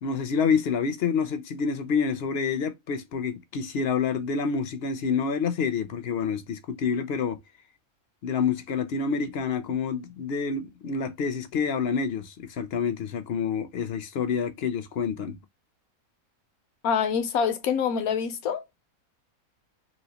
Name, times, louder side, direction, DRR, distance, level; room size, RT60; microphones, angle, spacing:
voice 1, 0.0-7.4 8.2-15.4, left 6 dB, 60° left, 0.7 m, -28 dB
voice 2, 16.8-18.6, left 7 dB, 85° left, 1.2 m, -26 dB
3.0 x 2.8 x 2.7 m
omnidirectional pair, 1.5 m